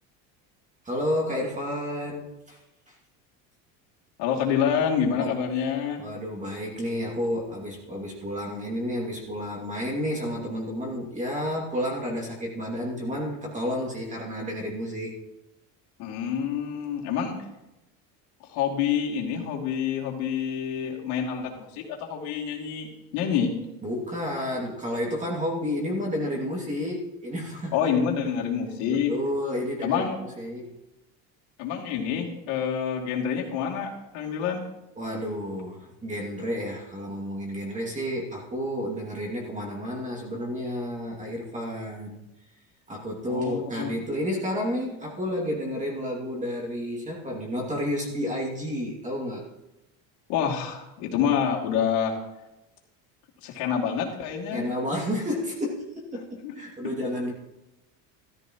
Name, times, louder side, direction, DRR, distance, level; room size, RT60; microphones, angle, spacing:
voice 1, 0.8-2.6 2.9-3.0 5.2-5.4 6.0-15.1 23.8-27.8 28.9-30.1 30.4-30.7 35.0-42.2 42.9-49.4 54.5-57.3, equal, 20° right, -2 dB, 2.6 m, -31 dB
voice 2, 4.2-6.0 16.0-17.4 18.4-23.5 27.7-29.1 29.8-30.2 31.6-34.6 43.3-43.9 50.3-52.1 53.4-54.6 56.4-56.5, left 8 dB, 80° left, -1 dB, 2.9 m, -27 dB
13.5 x 13.5 x 3.1 m, 0.94 s
cardioid pair, 125°, 40 cm